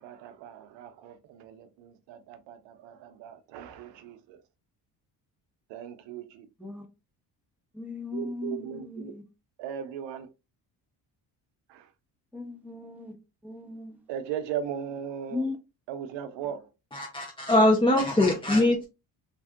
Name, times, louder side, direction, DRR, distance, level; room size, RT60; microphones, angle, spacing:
voice 1, 0.0-4.2 5.7-6.5 8.1-9.1 9.6-10.3 14.1-15.4 15.9-16.6, right 9 dB, 85° right, 0.7 m, -37 dB
voice 2, 7.7-9.2 12.3-13.1 13.4-14.0 15.3-15.6, left 3 dB, 5° right, 1.0 m, -37 dB
voice 3, 16.9-18.9, left 1 dB, 10° left, 0.6 m, -22 dB
3.3 x 2.5 x 2.4 m
cardioid pair, 85°, 42 cm